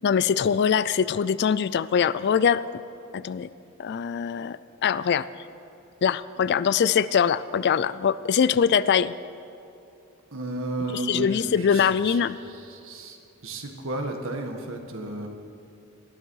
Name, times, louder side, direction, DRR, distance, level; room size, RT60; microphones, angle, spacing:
voice 1, 0.0-2.6 3.1-3.5 3.8-5.3 6.0-9.1 10.9-12.4, left 7 dB, 50° left, 17 dB, 0.3 m, -23 dB
voice 2, 10.3-12.2 12.7-13.2 13.4-15.3, right 2 dB, 65° right, 3 dB, 1.6 m, -33 dB
20.0 x 13.0 x 4.7 m, 2.8 s
head